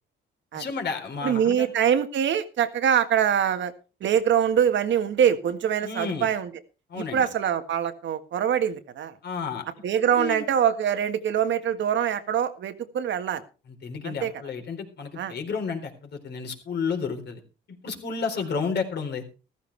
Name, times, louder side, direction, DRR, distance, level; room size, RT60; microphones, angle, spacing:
voice 1, 0.5-1.7 5.8-6.3 6.9-7.3 9.2-9.6 10.1-10.4 13.8-17.4 17.8-19.2, left 5 dB, 60° left, 3 dB, 4.0 m, -31 dB
voice 2, 1.2-3.7 4.0-6.5 6.9-9.1 9.8-13.4 14.0-14.3 15.2-15.3, right 9 dB, 70° right, 9 dB, 1.7 m, -24 dB
14.5 x 14.5 x 3.4 m, 0.33 s
cardioid pair, 90°, 20 cm